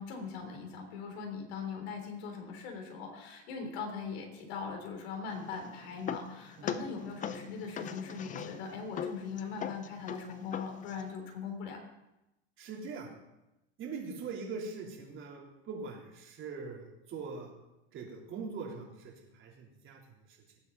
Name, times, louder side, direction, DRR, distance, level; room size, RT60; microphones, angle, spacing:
voice 1, 0.0-11.8, left 5 dB, 70° left, 3 dB, 3.6 m, -40 dB
sound 1, 5.3-11.1, left 8 dB, 25° left, 0.6 m, -41 dB
voice 2, 12.6-13.1 13.8-17.5 17.9-20.4, right 4 dB, 35° right, -1 dB, 3.6 m, -42 dB
19.5 x 8.2 x 4.1 m, 0.93 s
supercardioid pair, 125°, 33 cm